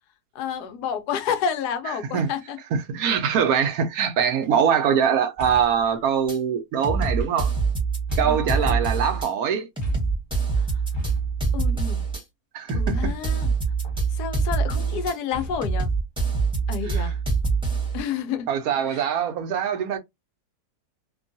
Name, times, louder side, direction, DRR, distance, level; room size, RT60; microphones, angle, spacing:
voice 1, 0.3-2.6 8.2-8.8 10.5-10.7 11.5-12.1 12.7-13.5 14.1-15.9 16.7-17.2 17.9-18.5 18.9-19.0, left 7 dB, 80° left, 1.2 m, -30 dB
voice 2, 2.7-7.5 8.2-9.7 12.5-13.1 16.9-17.1 18.5-20.0, right 7 dB, 70° right, 1.0 m, -23 dB
sound 1, 4.2-4.5 5.4-5.9 7.0-7.6 8.1-9.0 9.8-10.3 10.9-11.6 13.0-13.5 13.8-14.3 15.3-15.8 16.5-17.0, equal, 25° left, 0.6 m, -36 dB
sound 2, 6.3-6.4 6.8-9.3 9.8-12.2 12.7-15.1 15.6-18.0, right 4 dB, 5° right, 0.8 m, -24 dB
3.0 x 2.2 x 2.5 m
omnidirectional pair, 1.7 m